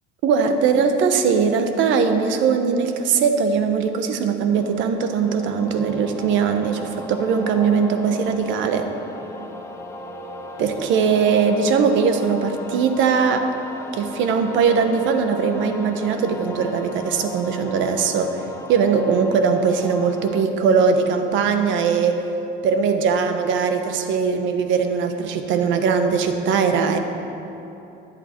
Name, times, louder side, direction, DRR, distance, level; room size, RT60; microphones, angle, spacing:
voice 1, 0.2-8.9 10.6-13.5 13.9-22.2 22.6-27.0, right 6 dB, 65° right, 6 dB, 1.2 m, -20 dB
sound 1, 4.5-20.4, left 2 dB, 15° left, 0.8 m, -38 dB
22.5 x 8.1 x 4.5 m, 2.9 s
cardioid pair, 160°, 21 cm